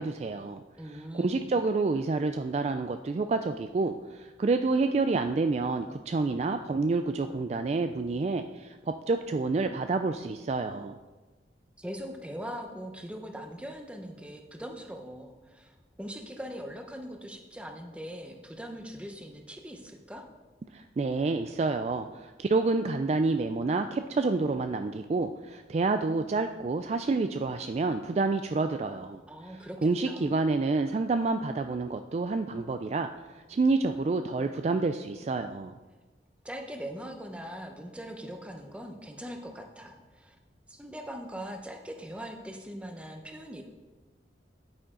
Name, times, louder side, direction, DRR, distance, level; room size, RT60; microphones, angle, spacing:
voice 1, 0.0-11.0 20.7-29.2 29.5-33.1 33.5-35.7, right 3 dB, 40° right, 8 dB, 0.3 m, -28 dB
voice 2, 0.8-1.5 11.8-20.2 29.3-29.8 30.0-30.3 36.4-40.4 40.7-43.6, equal, 5° right, 3 dB, 0.9 m, -41 dB
9.4 x 8.6 x 3.8 m, 1.2 s
head